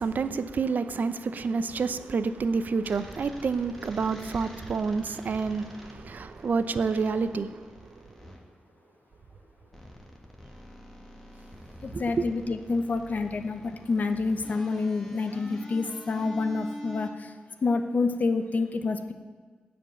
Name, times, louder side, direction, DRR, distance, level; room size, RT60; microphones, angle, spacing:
voice 1, 0.0-7.7 11.9-12.2, right 4 dB, 60° right, 0.6 m, -28 dB
sound 1, 2.8-8.4 9.7-17.1, equal, 5° left, 1.8 m, -45 dB
voice 2, 11.8-17.3 17.6-19.1, left 3 dB, 55° left, 0.9 m, -28 dB
15.5 x 5.2 x 9.0 m
wide cardioid pair, 140°, 3 cm